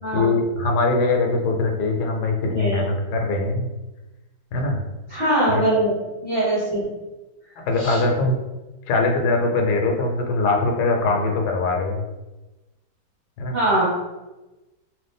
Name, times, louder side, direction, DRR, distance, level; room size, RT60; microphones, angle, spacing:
voice 1, 0.1-3.7 4.5-4.8 5.5-5.6 7.7-8.4 8.9-12.0 13.4-13.5, left 3 dB, 75° left, 2 dB, 1.2 m, -22 dB
voice 2, 2.5-2.8 5.1-5.9 6.2-6.8 7.8-8.0 13.5-13.9, right 1 dB, 45° right, -10 dB, 0.9 m, -22 dB
3.1 x 2.6 x 3.4 m, 1.1 s
omnidirectional pair, 1.8 m